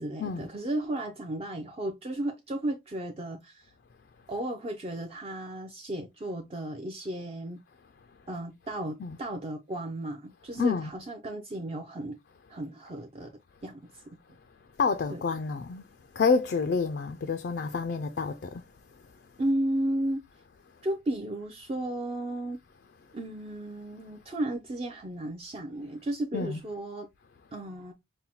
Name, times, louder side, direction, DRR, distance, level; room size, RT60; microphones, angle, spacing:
voice 1, 0.0-3.7 4.3-7.6 8.3-12.2 12.5-14.0 15.1-15.2 19.4-20.2 20.8-22.6 23.1-27.1 27.5-27.9, right 1 dB, 30° right, 0.4 m, -34 dB
voice 2, 10.5-10.9 14.8-15.8 16.1-18.6 26.3-26.6, left 5 dB, 55° left, 0.3 m, -28 dB
5.4 x 2.1 x 2.8 m
head